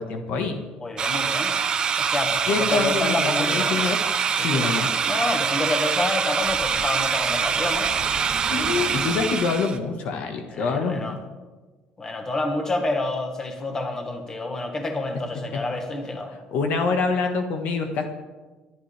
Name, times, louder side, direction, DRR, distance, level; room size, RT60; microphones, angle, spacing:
voice 1, 0.0-0.6 2.5-4.0 4.4-4.9 8.5-11.2 16.5-18.0, left 4 dB, 60° left, 5 dB, 1.6 m, -25 dB
voice 2, 0.8-1.5 2.0-3.8 4.4-7.9 10.5-11.2 12.0-16.3, left 2 dB, 20° left, 4 dB, 1.8 m, -28 dB
sound 1, 1.0-9.8, right 6 dB, 30° right, 0.9 m, -24 dB
25.5 x 11.0 x 3.5 m, 1.3 s
cardioid pair, 135°, 3 cm